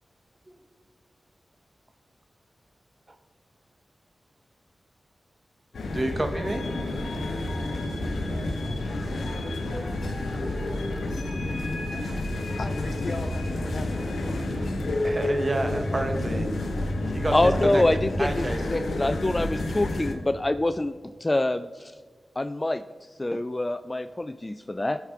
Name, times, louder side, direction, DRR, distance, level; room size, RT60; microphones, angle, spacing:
sound 1, 5.7-20.2, left 2 dB, 85° left, 0.9 m, -30 dB
voice 1, 5.9-6.7 7.0-7.3 15.0-16.5 17.1-17.8 18.2-18.8, right 2 dB, 40° right, 7 dB, 1.1 m, -30 dB
sound 2, 6.6-14.7, right 2 dB, 65° right, 1.0 m, -43 dB
voice 2, 12.6-14.5 17.4-17.8, left 2 dB, 55° left, 9 dB, 0.7 m, -37 dB
Bowed string instrument, 14.3-19.5, right 1 dB, 5° left, 1.2 m, -39 dB
voice 3, 17.3-18.3 18.6-20.9 21.2-21.9 22.4-22.8 23.2-25.0, left 2 dB, 25° left, 11 dB, 0.3 m, -25 dB
14.0 x 4.8 x 4.6 m, 1.5 s
cardioid pair, 45°, 0 cm